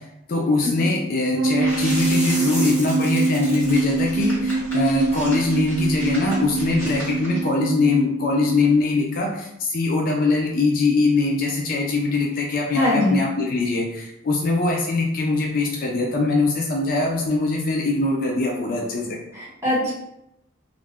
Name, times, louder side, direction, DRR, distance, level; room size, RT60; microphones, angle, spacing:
voice 1, 0.0-19.2, left 3 dB, 45° left, 0 dB, 0.4 m, -22 dB
sound 1, 1.3-8.8, right 3 dB, 75° right, 0.3 m, -25 dB
sound 2, 1.6-7.4, equal, 10° left, 1.3 m, -34 dB
voice 2, 12.7-13.2 19.3-19.9, left 2 dB, 15° right, -8 dB, 1.0 m, -22 dB
2.4 x 2.1 x 3.4 m, 0.84 s
head